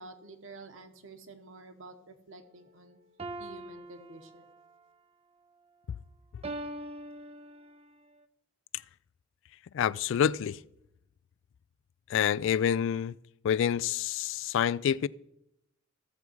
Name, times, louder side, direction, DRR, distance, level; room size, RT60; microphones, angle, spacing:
voice 1, 0.0-3.0 3.4-4.5, right 3 dB, 70° right, 1.3 m, -49 dB
sound 1, 3.2-4.8 6.4-7.9, right 1 dB, 30° right, 0.5 m, -42 dB
voice 2, 9.7-10.6 12.1-13.2 13.4-15.1, left 8 dB, 65° left, 0.3 m, -27 dB
15.0 x 7.1 x 4.6 m
head